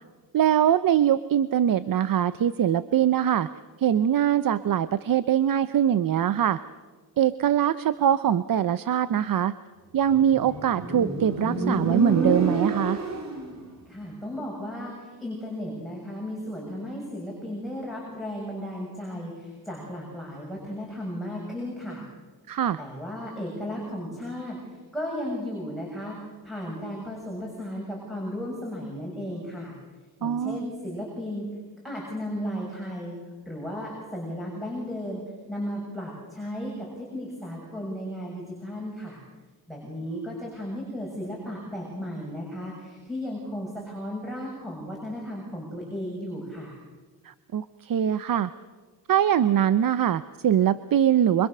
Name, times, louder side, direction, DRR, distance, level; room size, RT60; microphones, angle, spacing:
voice 1, 0.3-3.5 3.8-6.6 7.2-9.5 9.9-13.0 22.5-22.8 30.2-30.6 47.2-48.5 49.1-51.5, right 9 dB, 60° right, 14 dB, 0.8 m, -23 dB
Motorcycle, 10.1-13.6, right 3 dB, 45° right, 3.9 m, -28 dB
voice 2, 13.9-22.1 22.8-26.2 26.4-29.8 30.2-31.5 31.8-33.2 33.5-35.2 35.5-39.2 39.7-46.8, equal, ahead, -3 dB, 7.1 m, -35 dB
27.5 x 25.0 x 6.8 m, 1.4 s
wide cardioid pair, 135°, 38 cm